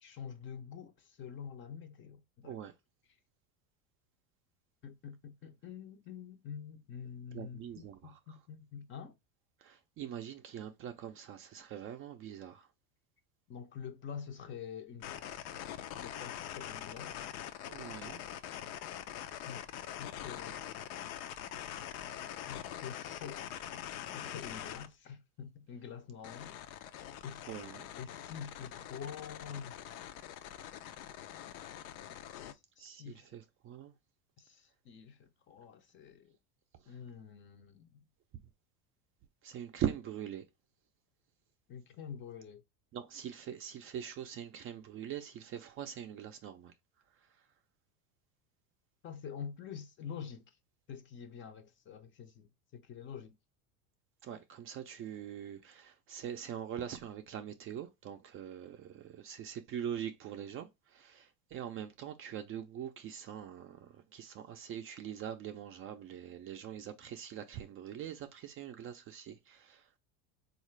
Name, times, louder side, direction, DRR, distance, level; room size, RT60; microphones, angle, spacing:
voice 1, 0.0-2.6 4.8-9.2 13.5-15.5 16.0-17.2 19.4-20.7 22.4-23.4 24.1-26.6 27.2-27.5 27.9-29.8 32.3-33.4 34.4-36.4 36.9-38.0 41.7-42.6 49.0-50.6 50.9-53.3, left 7 dB, 30° left, 0.5 m, -47 dB
voice 2, 2.4-2.7 7.3-8.4 9.6-12.7 17.7-18.2 27.5-27.9 32.8-33.9 36.8-37.0 39.4-40.5 42.9-46.7 54.2-69.9, right 10 dB, 35° right, 0.4 m, -43 dB
sound 1, 15.0-24.9 26.2-32.5, left 11 dB, 80° left, 0.6 m, -44 dB
3.7 x 2.4 x 3.1 m
supercardioid pair, 120°, 41 cm